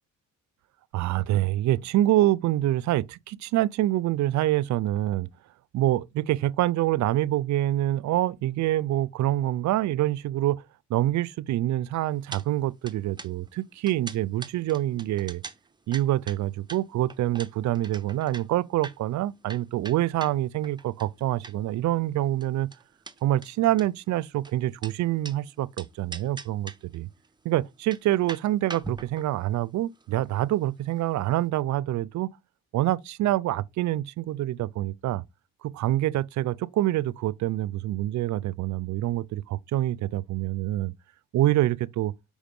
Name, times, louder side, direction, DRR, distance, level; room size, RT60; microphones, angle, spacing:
voice 1, 0.9-5.3 5.7-10.6 10.9-15.4 15.9-22.7 23.2-27.1 27.4-32.3 32.7-35.2 35.6-40.9 41.3-42.1, right 14 dB, 70° right, 0.5 m, -26 dB
sound 1, 12.3-12.5 12.7-21.8 22.1-25.4 25.8-27.0 27.2-27.3 27.7-31.1 31.4-31.5, right 3 dB, 15° right, 0.8 m, -42 dB
5.0 x 5.0 x 5.3 m
cardioid pair, 90°, 30 cm